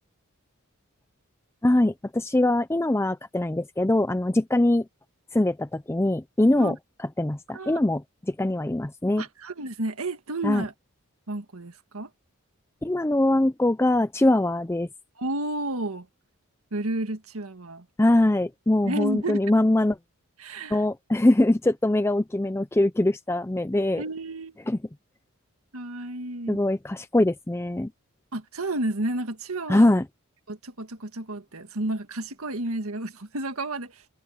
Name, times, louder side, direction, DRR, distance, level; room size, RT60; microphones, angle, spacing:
voice 1, 1.6-4.8 5.3-6.7 7.2-9.2 10.4-10.6 12.8-14.9 18.0-20.0 20.7-24.0 24.7-24.8 26.5-27.9 29.7-30.0, left 1 dB, 10° left, 0.5 m, -22 dB
voice 2, 9.2-10.7 11.3-12.1 15.2-16.1 16.7-17.9 18.8-19.4 20.4-20.8 24.0-24.6 25.7-26.6 28.3-29.9 30.5-34.0, right 1 dB, 85° right, 1.7 m, -31 dB
head